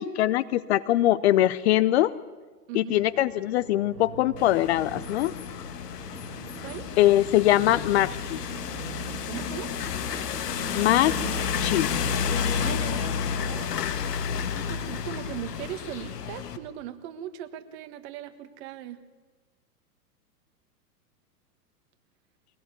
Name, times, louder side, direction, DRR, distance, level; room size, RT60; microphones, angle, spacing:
voice 1, 0.0-2.1 2.7-5.3 7.0-8.4 10.7-11.2 11.6-11.9, left 14 dB, 45° left, 17 dB, 0.6 m, -22 dB
voice 2, 2.7-3.0 6.6-6.9 9.2-9.7 12.6-13.8 14.5-19.0, right 11 dB, 40° right, 10 dB, 1.7 m, -39 dB
sound 1, 3.0-12.9, right 7 dB, 85° right, 1.9 m, -43 dB
sound 2, 4.4-16.6, left 7 dB, 75° left, 1.9 m, -31 dB
23.0 x 18.0 x 8.2 m, 1.3 s
hypercardioid pair, 130°, 48 cm